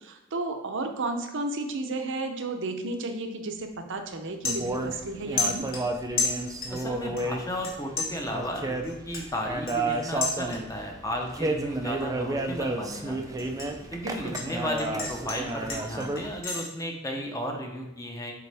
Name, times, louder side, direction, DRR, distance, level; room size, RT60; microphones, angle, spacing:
voice 1, 0.0-5.7 14.0-14.4, right 2 dB, 60° right, 5 dB, 0.7 m, -33 dB
sound 1, 3.5-3.7 4.1-5.1 5.4-6.9 7.2-7.7 8.0-10.9 11.3-11.6 12.0-14.5 14.8-16.7, left 4 dB, 65° left, 1.6 m, -33 dB
sound 2, 4.4-16.4, right 2 dB, 15° right, 0.4 m, -32 dB
voice 2, 6.7-13.5 13.9-18.3, equal, 15° left, 2 dB, 0.8 m, -34 dB
6.8 x 4.2 x 3.4 m, 0.98 s
head